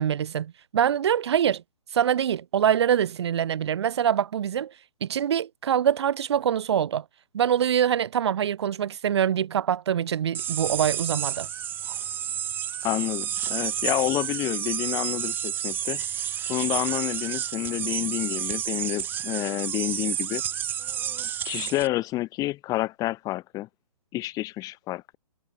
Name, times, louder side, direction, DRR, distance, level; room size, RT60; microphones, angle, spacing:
voice 1, 0.0-1.6 1.9-4.7 5.0-7.0 7.3-11.5, right 9 dB, 45° right, 2.3 m, -24 dB
sound 1, 10.3-21.9, right 10 dB, 10° right, 0.8 m, -30 dB
voice 2, 12.8-16.0 16.5-20.4 21.4-23.7 24.1-25.2, left 17 dB, 20° left, 3.3 m, -29 dB
figure-of-eight pair, 130°, 19 cm